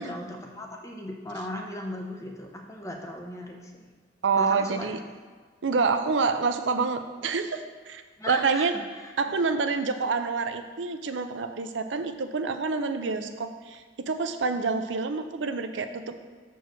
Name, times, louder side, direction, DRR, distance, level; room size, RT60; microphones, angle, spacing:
voice 1, 0.0-3.8 4.4-5.0 8.2-8.7 9.0-9.1, left 1 dB, 15° left, 2 dB, 0.8 m, -37 dB
voice 2, 4.2-5.0 5.6-8.7 9.2-16.2, right 4 dB, 80° right, 8 dB, 0.6 m, -27 dB
6.7 x 4.6 x 6.2 m, 1.5 s
head